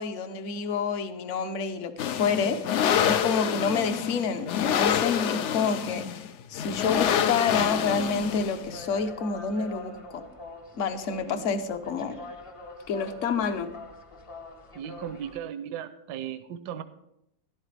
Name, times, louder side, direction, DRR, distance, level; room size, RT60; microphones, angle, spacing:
voice 1, 0.0-6.0 6.5-10.2 10.8-12.2 12.9-13.7, left 5 dB, 55° left, 9 dB, 1.1 m, -28 dB
sound 1, 2.0-8.8, left 9 dB, 70° left, 0.6 m, -27 dB
sound 2, 7.5-15.4, left 1 dB, 35° left, 0.5 m, -45 dB
voice 2, 11.3-11.6 14.7-16.8, right 9 dB, 80° right, 11 dB, 1.2 m, -37 dB
13.0 x 11.5 x 3.3 m, 0.81 s
omnidirectional pair, 1.8 m